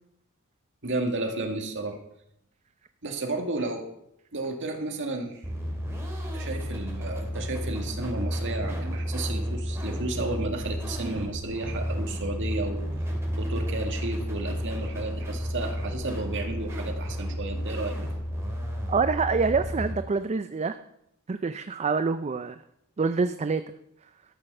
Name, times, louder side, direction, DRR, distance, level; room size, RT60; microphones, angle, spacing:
voice 1, 0.8-2.0 3.0-3.9 4.3-5.5 6.3-12.8 13.4-18.0, right 2 dB, 55° right, 3 dB, 1.9 m, -32 dB
sound 1, 5.4-19.9, equal, 10° right, 2.9 m, -32 dB
voice 2, 18.9-20.8 21.3-22.6 23.0-23.6, right 4 dB, 30° right, 10 dB, 0.4 m, -26 dB
13.0 x 6.4 x 6.6 m, 0.77 s
head